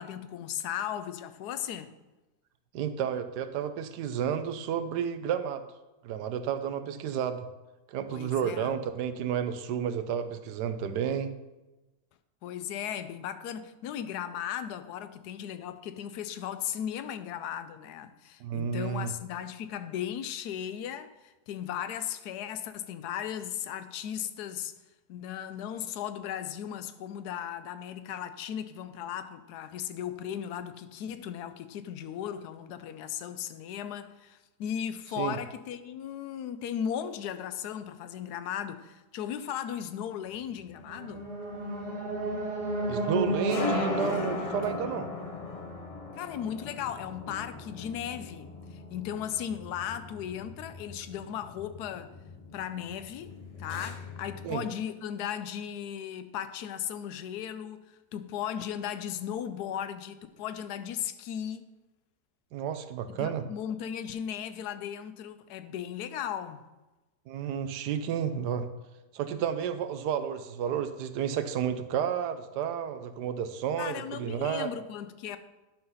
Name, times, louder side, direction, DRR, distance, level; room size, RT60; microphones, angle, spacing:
voice 1, 0.0-1.9 8.1-8.7 12.4-24.7 25.1-41.3 46.2-52.1 52.5-57.8 58.1-61.7 63.2-66.6 73.8-75.4, left 9 dB, 80° left, 1.1 m, -36 dB
voice 2, 2.7-5.6 6.0-7.5 7.9-11.3 18.4-19.1 35.2-35.4 42.9-45.1 54.4-54.6 62.5-63.4 67.3-68.7 69.1-74.7, right 8 dB, 85° right, 1.2 m, -31 dB
sound 1, 40.5-54.5, left 4 dB, 50° left, 0.4 m, -39 dB
sound 2, 40.8-45.9, right 1 dB, 35° right, 1.5 m, -33 dB
11.0 x 3.8 x 5.5 m
omnidirectional pair, 1.7 m